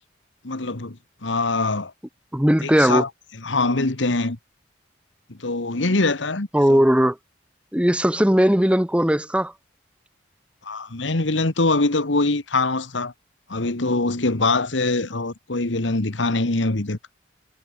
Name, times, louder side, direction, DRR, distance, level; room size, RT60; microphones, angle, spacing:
voice 1, 0.4-1.9 2.6-3.1 3.4-4.4 5.3-6.8 10.6-13.1 13.5-17.0, left 2 dB, 80° left, 1.7 m, -23 dB
voice 2, 2.3-3.0 6.5-7.2 7.7-9.5, equal, 5° right, 1.2 m, -18 dB
head